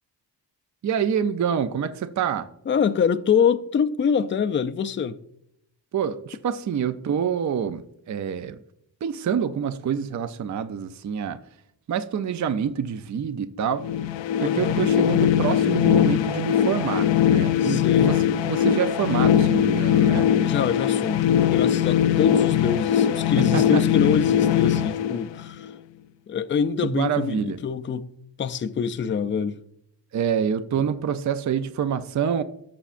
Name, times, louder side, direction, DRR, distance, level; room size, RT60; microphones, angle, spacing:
voice 1, 0.8-2.5 5.9-8.6 9.0-11.4 11.9-13.9 14.4-20.3 23.4-23.8 26.8-27.6 30.1-32.4, right 8 dB, 40° right, 0.5 m, -26 dB
voice 2, 2.7-5.2 14.3-14.8 17.6-18.2 20.4-25.7 26.3-28.1 28.4-29.6, left 7 dB, 30° left, 0.4 m, -25 dB
sound 1, 13.8-25.7, left 10 dB, 80° left, 0.6 m, -21 dB
17.0 x 7.1 x 2.5 m
wide cardioid pair, 140°, 44 cm